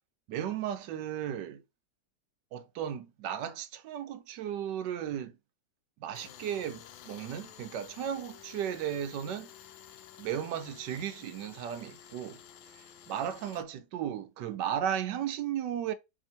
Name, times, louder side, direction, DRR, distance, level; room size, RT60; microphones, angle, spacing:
voice 1, 0.3-1.6 2.5-5.4 6.0-9.5 10.2-12.4 12.7-15.9, right 9 dB, 75° right, 1.2 m, -35 dB
Tools, 6.1-13.6, left 10 dB, 80° left, 1.4 m, -52 dB
4.3 x 2.8 x 4.3 m
omnidirectional pair, 2.1 m